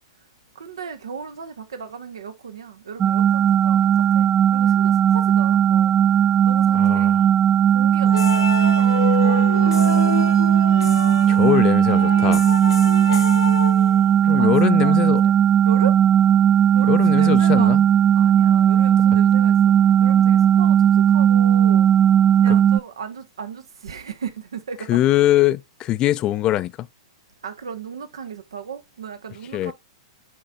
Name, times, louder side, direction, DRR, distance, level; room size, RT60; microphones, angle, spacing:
voice 1, 0.5-6.1 6.4-7.2 7.7-10.5 12.8-13.3 14.3-15.3 15.6-16.0 16.7-17.8 18.1-21.9 22.4-25.0 27.4-29.7, right 6 dB, 75° right, 1.2 m, -36 dB
sound 1, 3.0-22.8, right 9 dB, 25° right, 0.4 m, -17 dB
voice 2, 6.7-7.2 11.3-12.5 14.2-15.2 16.8-17.8 22.4-22.6 24.9-26.9 29.5-29.7, left 14 dB, 30° left, 0.4 m, -22 dB
sound 2, 8.0-14.3, left 8 dB, 80° left, 0.9 m, -29 dB
8.7 x 4.8 x 2.4 m
hypercardioid pair, 110°, 3 cm